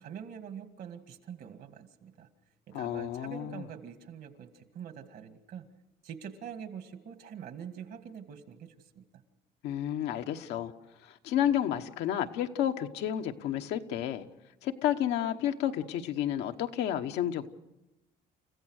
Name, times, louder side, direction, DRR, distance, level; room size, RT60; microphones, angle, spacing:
voice 1, 0.0-2.3 2.7-5.7 6.0-9.0, right 8 dB, 65° right, 8 dB, 2.1 m, -45 dB
voice 2, 2.7-3.6 9.6-10.7 11.0-14.3 14.6-17.5, left 10 dB, 85° left, 6 dB, 1.2 m, -31 dB
29.5 x 15.0 x 6.5 m, 0.98 s
cardioid pair, 110°, 17 cm